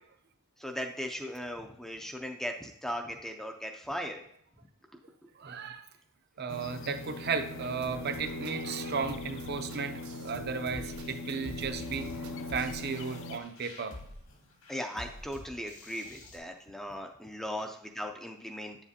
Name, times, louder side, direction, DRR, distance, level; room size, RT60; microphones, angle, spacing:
voice 1, 0.6-4.2 14.7-18.8, equal, ahead, 3 dB, 0.4 m, -38 dB
voice 2, 5.4-5.9 6.4-12.1 12.5-14.0, right 5 dB, 45° right, 7 dB, 0.5 m, -35 dB
sound 1, 6.5-13.4, left 2 dB, 60° left, 0.5 m, -40 dB
sound 2, 7.8-12.9, right 3 dB, 80° right, 0.8 m, -49 dB
sound 3, 10.7-16.4, left 1 dB, 80° left, 2.0 m, -48 dB
8.8 x 7.2 x 2.8 m, 0.73 s
head